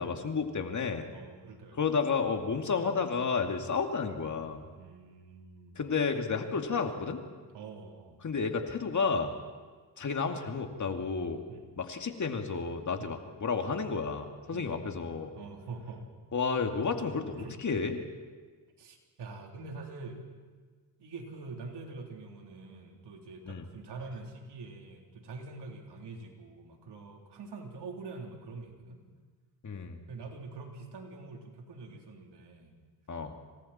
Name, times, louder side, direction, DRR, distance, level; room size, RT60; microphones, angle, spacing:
voice 1, 0.0-1.1 1.8-4.6 5.8-7.2 8.2-9.3 10.0-11.4 11.8-15.3 16.3-18.0 23.5-23.6 29.6-30.0 33.1-33.3, left 5 dB, 40° left, 4 dB, 2.5 m, -31 dB
voice 2, 1.1-2.0 4.8-5.9 7.5-8.2 11.5-11.7 13.0-13.2 14.5-14.9 15.3-16.1 17.4-17.6 18.8-20.3 21.0-29.0 30.1-32.8, right 3 dB, 70° right, 1 dB, 3.8 m, -45 dB
27.5 x 26.0 x 4.4 m, 1.5 s
cardioid pair, 70°, 43 cm